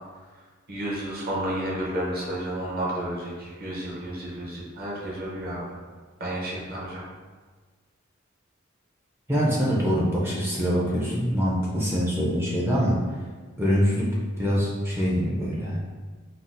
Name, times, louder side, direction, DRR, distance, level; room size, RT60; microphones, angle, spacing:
voice 1, 0.7-5.8 6.2-7.0, right 1 dB, 45° right, -5 dB, 0.8 m, -31 dB
voice 2, 9.3-13.0 13.6-15.8, equal, 10° right, -5 dB, 0.4 m, -24 dB
4.0 x 2.0 x 2.5 m, 1.4 s
head